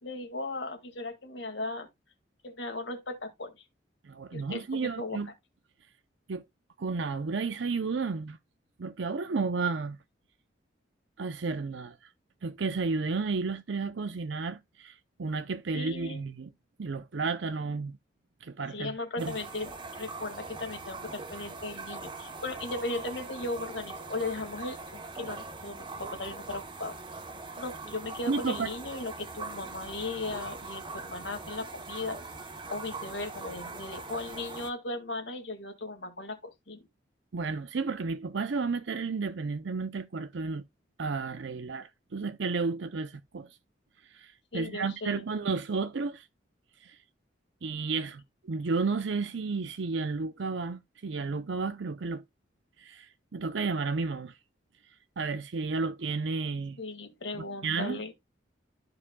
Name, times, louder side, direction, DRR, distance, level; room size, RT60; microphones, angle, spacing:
voice 1, 0.0-1.9 2.4-3.6 4.3-5.2 15.7-16.2 18.7-19.7 20.0-27.0 27.6-32.3 32.7-36.9 44.5-45.2 56.8-58.1, left 2 dB, 75° left, 2.0 m, -37 dB
voice 2, 4.0-5.3 6.3-6.4 6.8-8.4 8.8-10.0 11.2-12.1 12.4-16.5 16.8-18.0 18.4-19.4 28.3-28.7 37.3-40.6 41.0-43.5 44.1-46.3 46.8-47.0 47.6-52.2 52.8-54.4 55.2-56.8 57.3-58.0, right 4 dB, 75° right, 0.6 m, -32 dB
sound 1, 19.2-34.7, right 3 dB, 25° right, 0.9 m, -42 dB
13.5 x 4.8 x 2.2 m
head